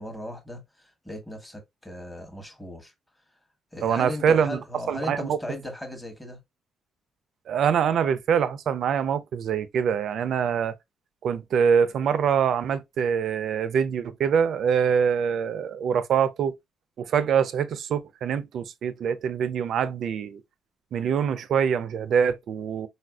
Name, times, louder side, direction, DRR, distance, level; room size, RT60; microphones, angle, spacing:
voice 1, 0.0-2.9 3.7-6.4, left 1 dB, 10° left, 1.1 m, -37 dB
voice 2, 3.8-4.6 4.9-5.4 7.5-10.7 11.2-16.5 17.0-20.4 20.9-22.9, right 7 dB, 65° right, 0.4 m, -24 dB
4.0 x 2.5 x 2.3 m
cardioid pair, 90°, 0 cm